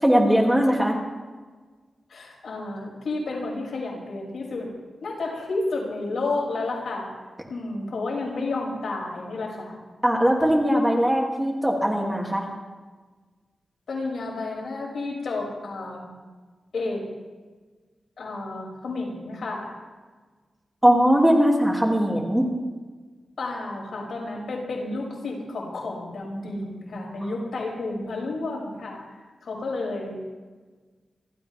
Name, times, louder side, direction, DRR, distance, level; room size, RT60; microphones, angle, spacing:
voice 1, 0.0-1.0 10.0-12.4 20.8-22.5, equal, 5° right, -1 dB, 2.8 m, -20 dB
voice 2, 2.1-4.7 5.0-7.1 7.5-9.7 13.9-16.1 16.7-17.0 18.2-19.7 23.4-29.0 29.4-30.2, left 2 dB, 75° left, -3 dB, 6.5 m, -31 dB
28.0 x 13.5 x 3.6 m, 1.4 s
wide cardioid pair, 115°, 0 cm